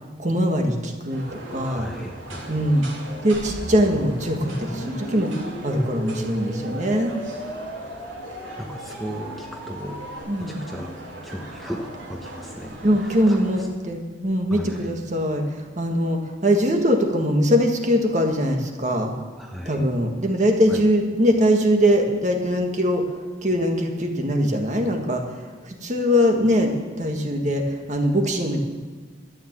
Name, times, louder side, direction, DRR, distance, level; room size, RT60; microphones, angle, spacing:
voice 1, 0.2-1.9 2.5-2.9 3.2-7.1 10.3-10.6 12.8-19.1 19.6-23.1 23.4-28.6, equal, 40° right, 3 dB, 1.7 m, -22 dB
sound 1, 1.1-13.7, right 1 dB, 85° right, 3.3 m, -40 dB
voice 2, 1.6-2.7 8.6-10.0 10.4-10.9 11.2-13.4 14.5-14.9 19.4-19.9 20.7-20.8, equal, ahead, 0 dB, 1.0 m, -36 dB
sound 2, 3.3-10.2, equal, 15° left, 2.1 m, -36 dB
13.0 x 9.6 x 7.5 m, 1.4 s
head